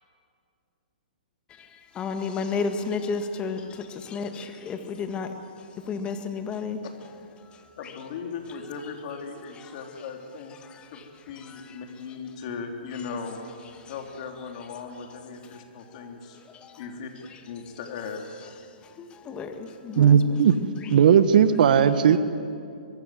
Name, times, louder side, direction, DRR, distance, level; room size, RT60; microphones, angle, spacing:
voice 1, 1.5-5.4 5.8-6.8 7.4-7.9 9.6-9.7 10.6-11.1 11.4-11.8 13.8-13.9 15.5-15.7 15.9-16.9 17.3-17.4 18.8-20.4 20.8-20.9, left 5 dB, 20° left, 7 dB, 1.8 m, -33 dB
voice 2, 7.8-10.5 10.9-11.0 11.3-13.4 13.9-16.4 16.8-17.1 17.5-18.2, left 5 dB, 50° left, 3 dB, 3.5 m, -37 dB
voice 3, 20.0-20.5 20.9-22.2, right 8 dB, 60° right, 12 dB, 1.3 m, -17 dB
23.0 x 23.0 x 7.7 m, 2.5 s
hypercardioid pair, 135°, 5 cm